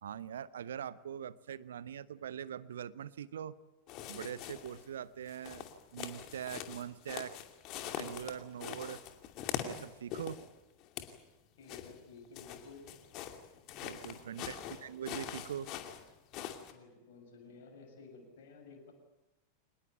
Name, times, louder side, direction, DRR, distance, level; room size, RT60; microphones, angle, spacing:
voice 1, 0.0-3.6 4.1-5.7 5.9-7.4 8.0-9.0 9.6-10.4 13.8-15.8, right 9 dB, 65° right, 18 dB, 0.8 m, -42 dB
sound 1, 3.9-4.9 5.3-10.5 10.8-11.2 11.7-16.7, left 10 dB, 40° left, 2.6 m, -43 dB
voice 2, 11.6-12.8 13.8-14.2 16.7-18.9, left 4 dB, 55° left, 4 dB, 7.0 m, -54 dB
26.0 x 20.0 x 9.2 m, 0.99 s
figure-of-eight pair, 90°, 0 cm